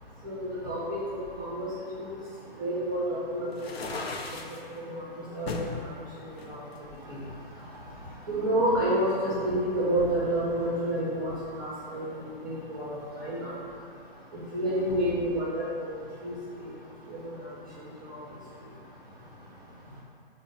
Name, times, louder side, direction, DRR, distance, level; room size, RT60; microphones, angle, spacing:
voice 1, 0.2-1.0 1.4-2.1 2.6-3.5 3.9-4.0 4.7-4.9 5.3-5.8 6.5-6.6 8.3-11.3 11.6-12.0 12.4-13.5 14.5-15.9 16.2-16.3 17.1-17.2 18.1-18.2, right 1 dB, 20° right, -9 dB, 0.6 m, -29 dB
sound 1, 3.5-4.6 5.5-5.8 6.4-7.4, left 3 dB, 85° left, 0.6 m, -36 dB
4.9 x 2.2 x 4.0 m, 2.2 s
hypercardioid pair, 175°, 30 cm